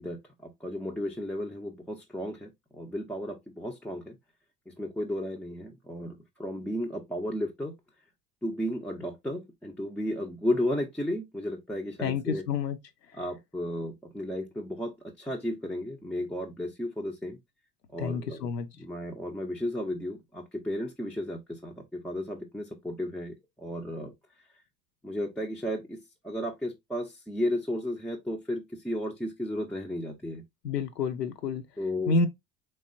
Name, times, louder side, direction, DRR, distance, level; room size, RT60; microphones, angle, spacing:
voice 1, 0.0-4.2 4.7-7.8 8.4-12.4 13.1-17.4 17.9-18.5 18.7-24.1 25.0-30.4 31.8-32.1, left 1 dB, 5° left, 0.3 m, -34 dB
voice 2, 12.0-12.8 18.0-18.7 30.6-31.6 32.1-32.3, left 4 dB, 85° left, 0.6 m, -28 dB
3.4 x 3.3 x 2.5 m
figure-of-eight pair, 55°, 49 cm